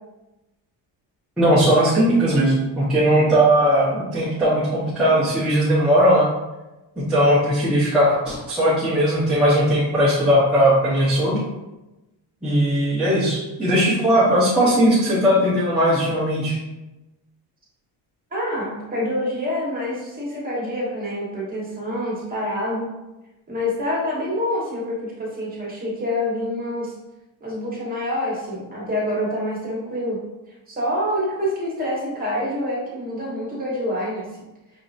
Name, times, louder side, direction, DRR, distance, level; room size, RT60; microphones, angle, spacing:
voice 1, 1.4-6.3 7.1-11.4 12.4-16.6, equal, ahead, -11 dB, 0.8 m, -18 dB
voice 2, 18.3-22.9 23.5-26.9 27.4-30.2 30.7-34.2, left 1 dB, 20° right, -5 dB, 1.3 m, -26 dB
5.2 x 2.8 x 2.5 m, 1.0 s
cardioid pair, 155°, 47 cm